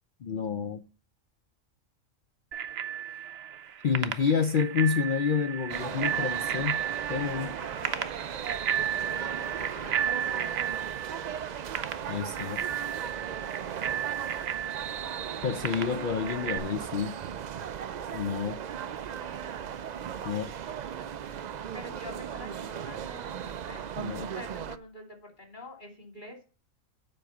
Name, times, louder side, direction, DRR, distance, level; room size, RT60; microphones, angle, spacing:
voice 1, 0.2-0.8 3.8-6.8 7.1-7.5 12.1-12.6 15.4-17.2 18.1-18.6 20.2-20.5 24.0-24.3, left 6 dB, 55° left, 0.6 m, -29 dB
Bicycle bell, 2.5-16.6, right 9 dB, 60° right, 0.9 m, -34 dB
sound 1, 5.7-24.8, right 8 dB, 85° right, 0.3 m, -37 dB
voice 2, 7.2-8.3 8.8-10.9 21.7-23.8 24.3-26.4, left 1 dB, 35° left, 2.7 m, -46 dB
7.8 x 5.0 x 6.8 m
omnidirectional pair, 1.4 m